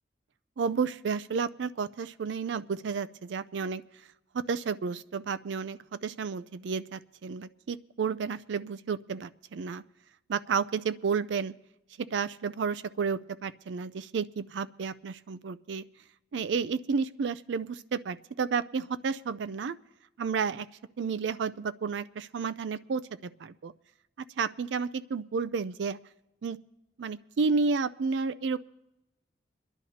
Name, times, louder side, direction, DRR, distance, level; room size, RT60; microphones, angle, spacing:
voice 1, 0.6-3.8 4.3-9.8 10.3-11.5 12.0-15.8 16.3-19.8 20.2-20.7 21.0-23.7 24.4-26.0 26.4-26.6 27.0-28.6, right 5 dB, 80° right, 14 dB, 0.4 m, -31 dB
27.5 x 11.0 x 2.8 m, 0.94 s
head